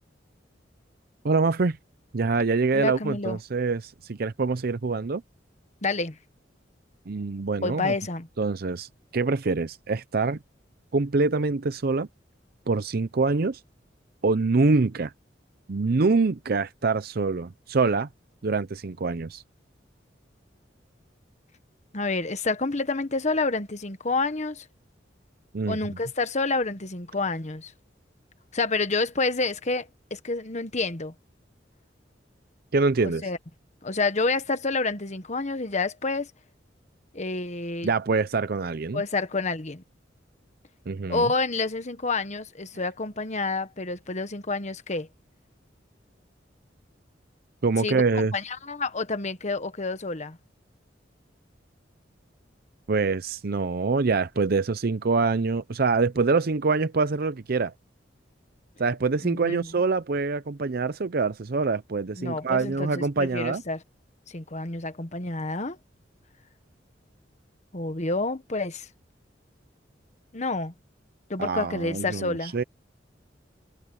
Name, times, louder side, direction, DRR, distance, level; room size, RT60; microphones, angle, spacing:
voice 1, 1.2-1.8 2.1-5.2 7.1-7.9 8.4-10.4 10.9-12.1 12.7-13.6 14.2-15.1 15.7-18.1 18.4-19.4 25.5-25.8 32.7-33.3 37.8-39.0 40.9-41.3 47.6-48.3 52.9-57.7 58.8-63.6 71.4-72.6, right 4 dB, 55° right, 0.6 m, -25 dB
voice 2, 2.7-3.4 5.8-6.2 7.6-8.3 21.9-24.6 25.7-27.7 28.5-31.1 33.0-33.4 33.8-36.3 37.1-37.9 38.9-39.8 41.1-45.1 47.8-50.4 59.2-59.7 62.2-63.8 64.3-65.8 67.7-68.9 70.3-70.7 71.3-72.5, left 3 dB, 40° left, 1.4 m, -28 dB
head